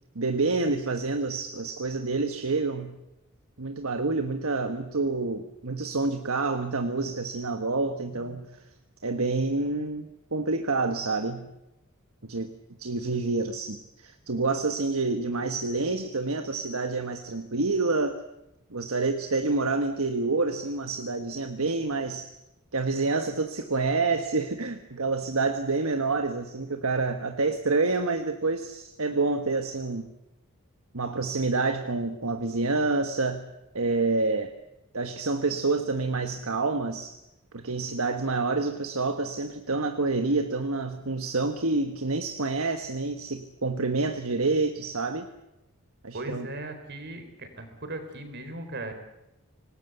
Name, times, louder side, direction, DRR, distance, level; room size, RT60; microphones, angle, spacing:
voice 1, 0.1-3.0 3.6-8.6 9.0-11.5 12.2-12.5 12.8-18.2 18.7-22.3 22.7-30.1 30.9-33.4 33.7-34.5 34.9-37.2 37.5-45.3 46.0-46.5, right 3 dB, 70° right, 7 dB, 1.4 m, -28 dB
voice 2, 46.1-48.9, right 2 dB, 50° right, 7 dB, 4.4 m, -38 dB
25.5 x 19.5 x 8.1 m, 0.90 s
head